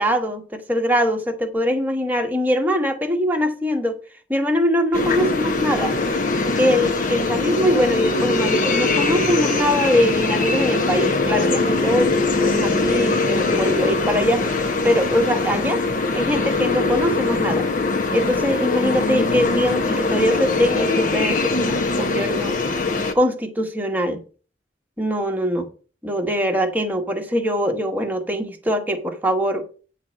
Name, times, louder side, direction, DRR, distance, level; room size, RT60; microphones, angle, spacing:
voice 1, 0.0-4.0 4.3-5.9 6.6-15.8 16.1-17.7 18.1-22.5 23.1-24.2 25.0-25.7 26.0-29.6, equal, 10° right, 1.3 m, -22 dB
sound 1, 4.9-23.1, left 3 dB, 45° left, 1.0 m, -22 dB
9.4 x 4.2 x 7.4 m
head